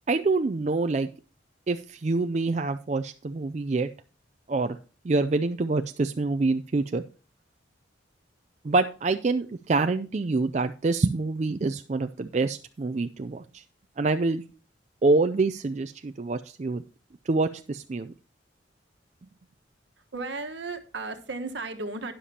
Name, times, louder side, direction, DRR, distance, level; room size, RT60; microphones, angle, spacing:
voice 1, 0.1-1.1 1.7-3.9 4.5-4.8 5.0-7.0 8.6-13.6 14.0-14.4 15.0-16.8 17.3-18.1, right 3 dB, 35° right, 8 dB, 0.4 m, -26 dB
voice 2, 20.1-22.1, right 3 dB, 70° right, 6 dB, 1.3 m, -34 dB
12.5 x 10.0 x 2.8 m, 0.36 s
head